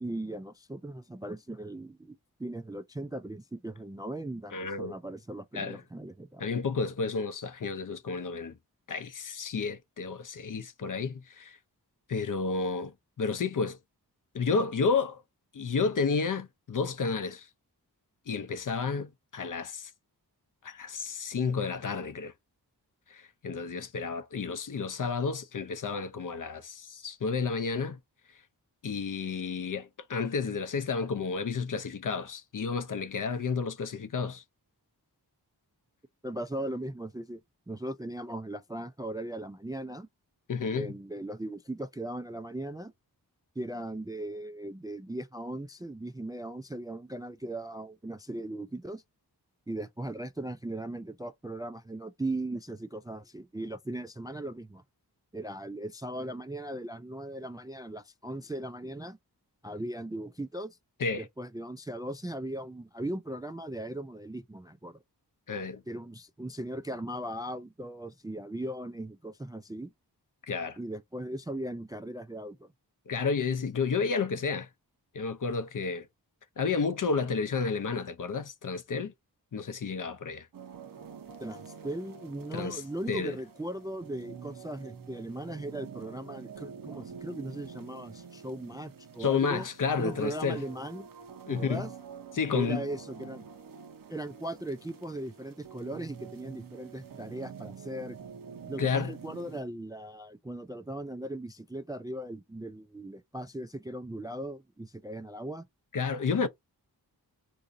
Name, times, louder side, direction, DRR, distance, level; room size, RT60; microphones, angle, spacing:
voice 1, 0.0-6.5 36.2-37.4 37.7-40.1 40.8-42.9 43.6-49.0 49.7-54.8 55.3-59.2 59.6-60.8 61.2-65.0 65.9-69.9 70.8-72.7 81.4-89.7 90.0-91.1 91.5-91.9 92.5-93.4 94.1-98.2 98.7-105.7, right 1 dB, 10° right, 0.3 m, -38 dB
voice 2, 4.5-4.9 5.5-5.8 6.4-8.5 8.9-11.6 12.1-12.9 13.2-13.8 14.3-15.2 15.5-17.5 18.3-19.9 20.6-22.3 23.1-28.0 28.8-34.4 40.5-40.9 61.0-61.3 65.5-65.8 70.5-70.8 73.1-74.7 75.1-76.1 76.6-79.1 79.5-80.5 82.5-82.8 83.1-83.4 89.2-90.6 91.5-91.9 92.3-92.8 98.8-99.1 105.9-106.5, left 5 dB, 50° left, 0.6 m, -31 dB
sound 1, 80.5-99.6, right 6 dB, 55° right, 0.7 m, -47 dB
3.9 x 2.7 x 2.5 m
cardioid pair, 40°, 41 cm